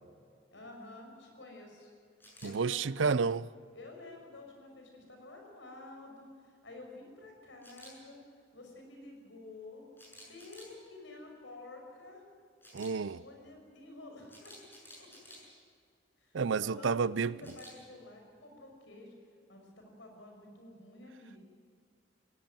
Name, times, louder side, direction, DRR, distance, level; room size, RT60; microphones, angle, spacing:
voice 1, 0.5-1.9 2.4-3.2 3.7-8.2 8.5-9.8 10.2-12.2 13.1-14.6 15.0-15.1 15.4-15.6 16.2-19.1 19.5-21.4, left 2 dB, 75° left, 6.0 m, -50 dB
Camera, 2.2-2.5 7.6-7.9 10.0-10.7 12.6-12.9 14.3-15.4 17.4-17.7, equal, 10° left, 7.6 m, -52 dB
voice 2, 2.4-3.4 12.7-13.2 16.3-17.4, right 5 dB, 75° right, 0.5 m, -30 dB
19.5 x 16.5 x 9.3 m
head